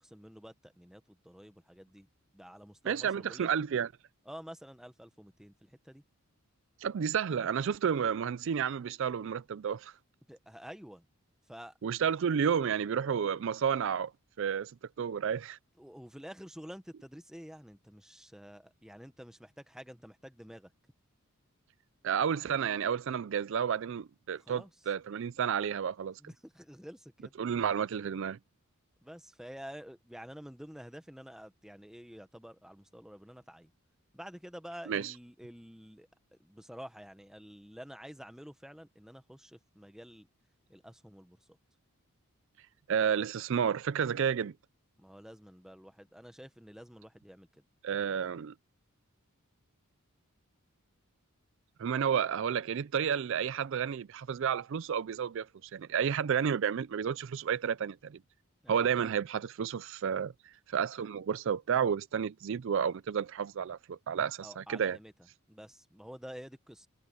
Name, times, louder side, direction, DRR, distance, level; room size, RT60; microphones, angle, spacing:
voice 1, 0.0-2.1 2.3-3.5 4.3-6.0 10.3-11.1 11.5-11.8 15.8-20.7 24.4-24.7 26.2-27.3 29.0-33.7 34.1-36.1 36.4-40.3 40.7-41.4 45.0-47.6 58.6-58.9 64.4-65.1 65.5-66.9, equal, ahead, 1.0 m, -49 dB
voice 2, 2.8-3.9 6.8-9.9 11.8-14.1 14.4-14.7 15.0-15.6 22.0-26.2 27.4-28.4 34.9-35.1 42.9-44.5 47.8-48.5 51.8-58.2 58.7-65.0, right 7 dB, 55° right, 0.4 m, -31 dB
head